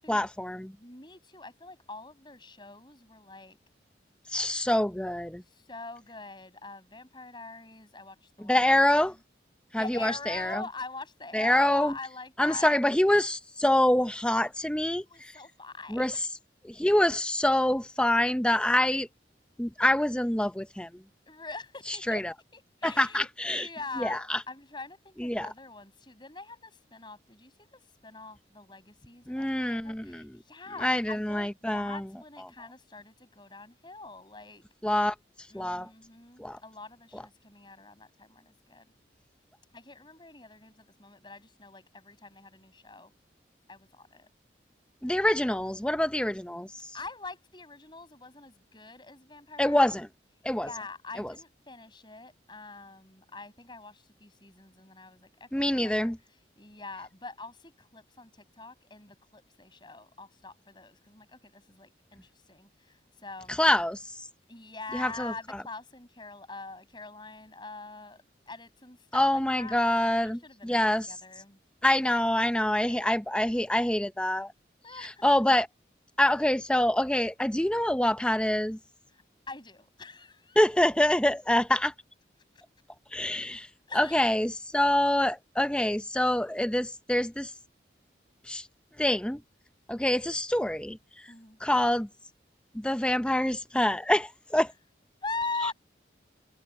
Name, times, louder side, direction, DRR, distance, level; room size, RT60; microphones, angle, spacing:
voice 1, 0.1-0.7 4.3-5.4 8.4-9.2 9.7-10.6 11.3-11.9 12.4-15.3 15.9-16.1 16.6-19.1 19.6-20.9 21.9-22.3 22.8-23.6 24.0-24.4 25.2-25.5 29.3-30.4 30.8-32.0 34.8-35.1 35.5-35.9 36.4-36.6 37.1-37.2 45.0-46.9 49.6-50.1 50.4-50.7 51.2-51.3 55.5-56.2 63.5-64.1 64.9-65.3 69.1-71.1 71.8-74.5 75.0-75.7 76.2-78.8 80.6-81.9 83.1-83.7 83.9-87.5 88.5-88.7 89.0-89.4 89.9-91.3 91.6-92.1 92.7-94.7, left 1 dB, 5° left, 0.6 m, -26 dB
voice 2, 0.8-3.6 5.4-8.5 8.9-9.2 9.8-12.8 15.1-16.1 21.3-22.2 22.5-34.6 35.5-38.9 39.7-43.1 43.7-44.3 46.9-50.0 50.5-63.6 64.5-69.2 69.6-69.8 70.2-71.6 72.9-73.1 74.8-75.3 79.1-80.7 82.5-82.6 83.9-84.2 91.3-91.6 95.2-95.7, left 3 dB, 25° left, 7.1 m, -43 dB
head